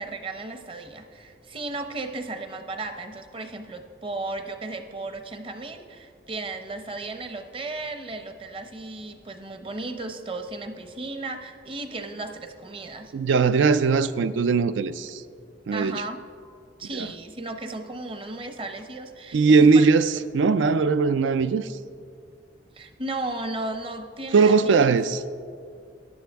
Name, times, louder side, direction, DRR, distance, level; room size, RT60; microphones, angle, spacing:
voice 1, 0.0-13.1 15.7-16.2 16.8-19.9 22.7-24.9, right 2 dB, 30° right, 0.7 m, -35 dB
voice 2, 13.1-15.2 15.7-16.0 16.9-17.1 19.3-21.7 24.3-25.2, right 4 dB, 85° right, 0.4 m, -20 dB
14.5 x 10.5 x 3.5 m
head